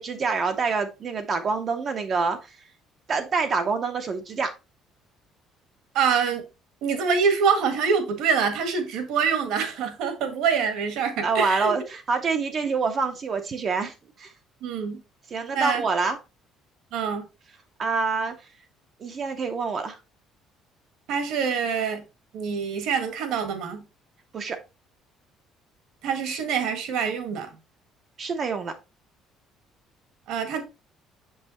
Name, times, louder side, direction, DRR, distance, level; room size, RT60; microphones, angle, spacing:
voice 1, 0.0-2.5 3.1-4.5 11.2-14.3 15.3-16.2 17.8-18.4 19.0-20.0 24.3-24.6 28.2-28.7, right 4 dB, 30° right, 0.7 m, -26 dB
voice 2, 5.9-6.4 6.8-11.7 14.6-15.0 15.5-15.8 16.9-17.2 21.1-22.0 22.3-23.8 26.0-27.5 30.3-30.6, right 6 dB, 65° right, 1.6 m, -25 dB
7.1 x 5.5 x 2.9 m
cardioid pair, 180°, 0 cm